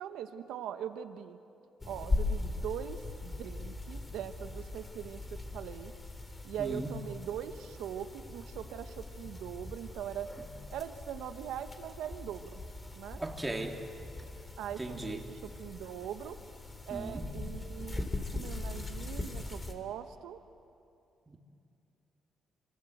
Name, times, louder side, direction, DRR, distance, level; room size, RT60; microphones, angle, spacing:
voice 1, 0.0-1.4 1.9-5.9 6.4-10.3 10.7-12.6 13.0-13.2 14.6-16.4 16.9-18.1 18.3-20.4, right 9 dB, 90° right, 8 dB, 1.3 m, -41 dB
sound 1, 1.8-19.7, left 2 dB, 25° left, 3.6 m, -40 dB
voice 2, 13.2-14.1 14.8-15.2 16.9-17.3 21.3-21.4, right 2 dB, 15° right, 1 dB, 3.2 m, -38 dB
27.0 x 25.5 x 8.1 m, 2.6 s
cardioid pair, 90°, 0 cm